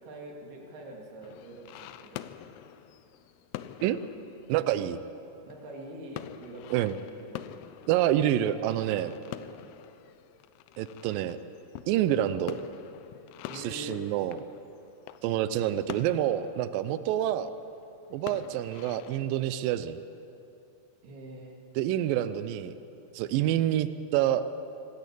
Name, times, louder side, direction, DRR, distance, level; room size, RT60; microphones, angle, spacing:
voice 1, 0.0-2.3 5.4-7.6 13.5-14.0 21.0-21.5, right 1 dB, 70° right, 0 dB, 4.4 m, -45 dB
sound 1, 1.2-19.4, left 12 dB, 80° left, 2.5 m, -46 dB
voice 2, 4.5-5.0 6.7-7.0 7.9-9.1 10.8-11.4 11.9-12.6 13.5-14.4 15.2-17.5 18.1-20.0 21.8-22.7 23.1-24.5, right 12 dB, 85° right, 13 dB, 2.0 m, -27 dB
25.0 x 13.0 x 8.4 m, 2.8 s
omnidirectional pair, 4.8 m